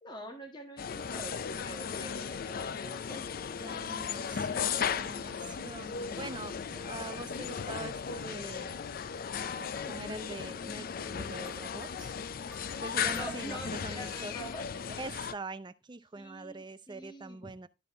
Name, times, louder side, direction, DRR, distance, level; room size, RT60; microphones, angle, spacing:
voice 1, 0.0-4.0 13.1-14.6 16.1-17.5, equal, 25° left, 1.6 m, -45 dB
sound 1, 0.8-15.3, left 7 dB, 55° left, 0.4 m, -36 dB
voice 2, 3.6-8.8 9.4-12.1 12.8-14.3 15.0-17.7, right 3 dB, 25° right, 0.5 m, -44 dB
sound 2, 11.0-14.8, left 1 dB, ahead, 2.0 m, -57 dB
12.0 x 4.2 x 3.8 m
head